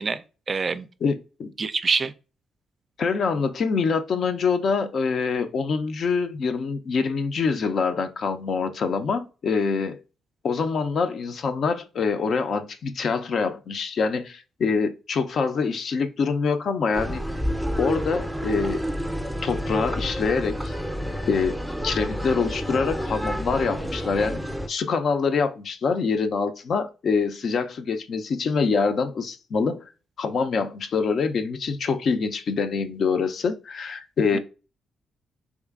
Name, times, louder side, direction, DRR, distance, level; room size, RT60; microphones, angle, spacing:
voice 1, 0.0-0.9 1.6-2.1 34.3-34.4, right 4 dB, 45° right, 0.3 m, -26 dB
voice 2, 1.0-1.5 3.0-10.0 10.4-17.2 17.8-18.8 19.4-20.7 21.2-21.6 21.8-24.4 24.7-29.8 30.2-34.4, left 5 dB, 60° left, 0.5 m, -25 dB
sound 1, 16.9-24.7, equal, 5° left, 0.6 m, -29 dB
3.6 x 3.0 x 2.4 m
hypercardioid pair, 45°, 0 cm